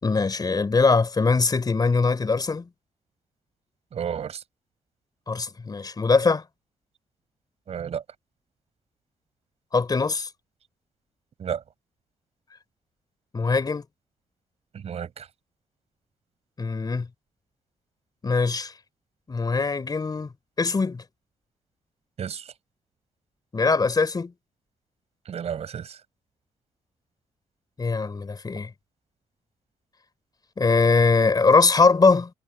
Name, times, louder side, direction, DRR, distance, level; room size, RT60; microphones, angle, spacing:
voice 1, 0.0-2.7 5.3-6.4 9.7-10.3 13.3-13.8 16.6-17.1 18.2-18.7 19.3-20.3 20.6-21.0 23.5-24.3 27.8-28.7 30.6-32.3, left 4 dB, 35° left, 3.6 m, -21 dB
voice 2, 3.9-4.4 7.7-8.0 11.4-11.6 14.7-15.3 22.2-22.4 25.3-26.0, right 8 dB, 60° right, 7.5 m, -32 dB
cardioid pair, 75°, 12 cm